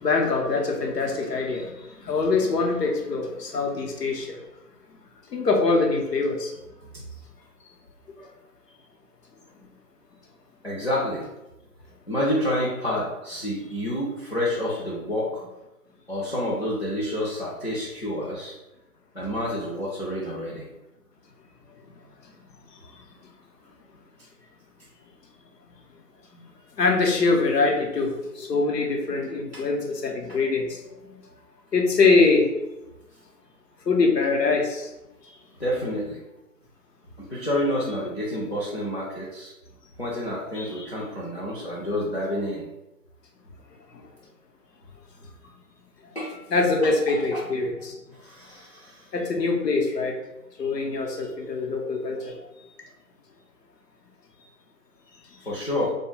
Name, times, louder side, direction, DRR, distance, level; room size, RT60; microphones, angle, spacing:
voice 1, 0.0-1.7 2.1-4.3 5.3-6.5 26.8-28.1 28.4-30.6 31.7-32.4 33.9-34.8 40.5-40.9 46.5-47.9 49.1-50.2 50.6-52.3, left 3 dB, 85° left, 2 dB, 0.8 m, -23 dB
voice 2, 10.6-11.3 12.1-15.4 16.1-18.5 19.1-20.6 29.5-29.6 30.3-30.5 35.6-36.2 37.2-39.5 40.0-42.6 46.1-46.5 46.8-47.4 48.2-49.1 55.4-55.9, left 1 dB, 45° left, -7 dB, 0.4 m, -29 dB
2.4 x 2.1 x 3.2 m, 0.97 s
figure-of-eight pair, 160°, 48 cm